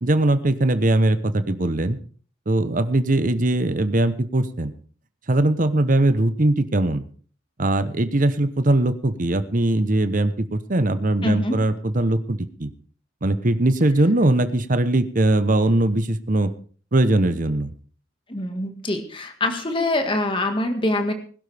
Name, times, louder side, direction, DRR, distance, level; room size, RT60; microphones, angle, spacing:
voice 1, 0.0-2.0 2.5-4.7 5.3-7.0 7.6-12.7 13.2-16.5 16.9-17.7, right 1 dB, 40° right, 11 dB, 0.9 m, -20 dB
voice 2, 11.2-11.6 18.3-21.1, left 1 dB, 25° left, 6 dB, 1.8 m, -24 dB
20.5 x 12.0 x 3.5 m, 0.43 s
head